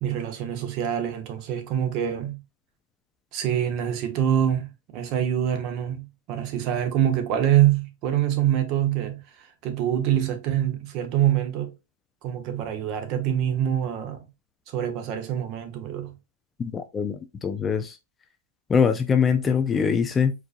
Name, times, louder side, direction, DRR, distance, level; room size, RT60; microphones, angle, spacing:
voice 1, 0.0-2.4 3.3-4.7 4.9-11.7 12.2-14.2 14.7-16.1, right 10 dB, 40° right, 0.9 m, -25 dB
voice 2, 16.6-18.0 18.7-20.3, left 6 dB, 15° left, 0.4 m, -23 dB
4.4 x 2.5 x 2.5 m
hypercardioid pair, 135°, 0 cm